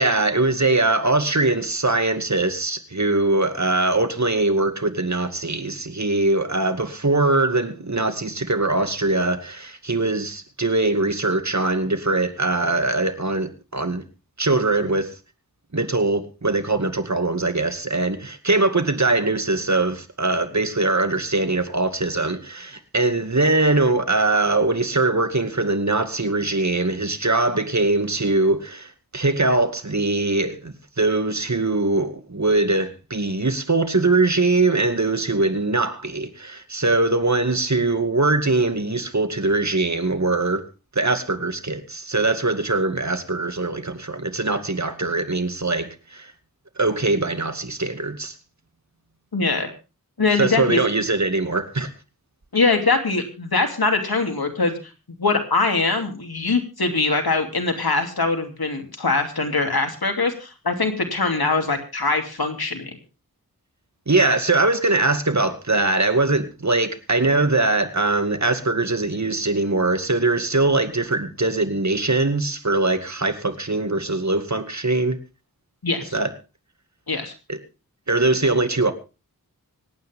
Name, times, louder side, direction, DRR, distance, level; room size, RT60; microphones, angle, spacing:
voice 1, 0.0-14.0 14.4-15.1 15.7-40.6 41.0-46.3 46.8-48.3 50.4-51.9 64.1-75.2 76.1-76.3 77.5-77.6 78.1-78.9, right 2 dB, 50° right, 2.3 m, -22 dB
voice 2, 49.3-49.7 50.2-50.8 52.5-54.8 55.2-62.9 75.8-76.2 77.1-77.3, left 3 dB, 90° left, 2.8 m, -22 dB
25.5 x 9.5 x 3.6 m
wide cardioid pair, 45°, 36 cm